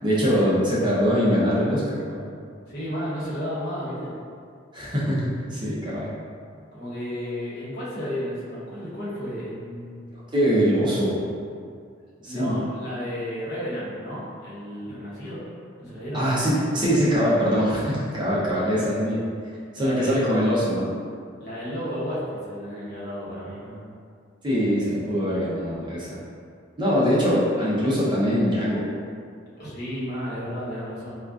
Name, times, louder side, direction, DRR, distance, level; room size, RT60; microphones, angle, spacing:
voice 1, 0.0-2.2 4.7-6.1 10.3-11.2 12.2-12.6 16.1-19.2 19.7-20.9 24.4-26.2 26.8-28.8, equal, 25° right, -8 dB, 0.6 m, -23 dB
voice 2, 2.7-4.1 6.7-10.1 12.2-15.4 15.8-16.2 19.8-20.2 21.4-23.8 29.6-31.2, equal, 55° left, -10 dB, 1.1 m, -32 dB
3.6 x 2.3 x 2.4 m, 2.3 s
head